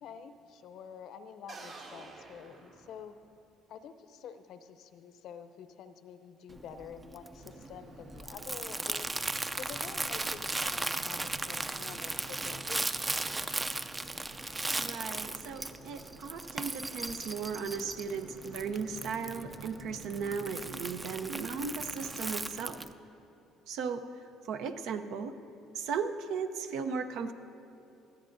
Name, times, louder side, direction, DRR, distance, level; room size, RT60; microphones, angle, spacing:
voice 1, 0.0-3.1 3.7-9.1 9.6-13.2, left 7 dB, 65° left, 11 dB, 0.7 m, -48 dB
sound 1, 1.5-3.4, right 3 dB, 55° right, 1.9 m, -49 dB
Crumpling crinkling, 6.5-22.9, right 2 dB, 20° right, 0.5 m, -37 dB
sound 2, 7.4-22.2, right 2 dB, 90° right, 1.6 m, -52 dB
voice 2, 14.7-22.9 23.7-24.1 24.4-25.3 25.7-27.3, right 5 dB, 75° right, 8 dB, 0.7 m, -36 dB
19.5 x 14.0 x 2.6 m, 2.7 s
supercardioid pair, 85°, 0 cm